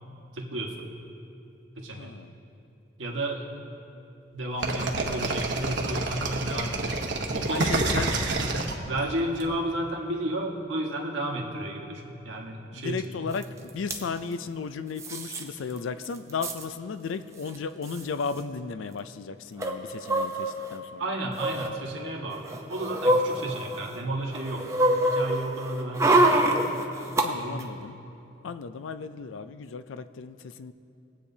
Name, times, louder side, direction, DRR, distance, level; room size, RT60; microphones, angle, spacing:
voice 1, 0.3-0.9 1.8-2.1 3.0-3.5 4.3-7.0 7.3-7.9 8.9-13.3 21.0-24.7 25.0-26.5 27.4-27.7, right 1 dB, 90° right, -1 dB, 1.5 m, -32 dB
voice 2, 2.0-2.3 7.5-8.2 12.7-21.1 27.2-28.0 28.4-30.7, left 5 dB, 85° left, 12 dB, 0.4 m, -35 dB
sound 1, 4.6-9.4, right 2 dB, 65° right, 1.0 m, -28 dB
sound 2, 13.4-13.5 13.7-14.0 15.0-15.4 15.8-15.9 16.0-16.6 17.5-17.6 17.8-18.0 19.6-20.7 21.3-21.7 22.3-24.0 24.3-27.3 27.6-27.7, right 1 dB, 15° right, 0.6 m, -25 dB
21.5 x 8.3 x 2.8 m, 2.7 s
head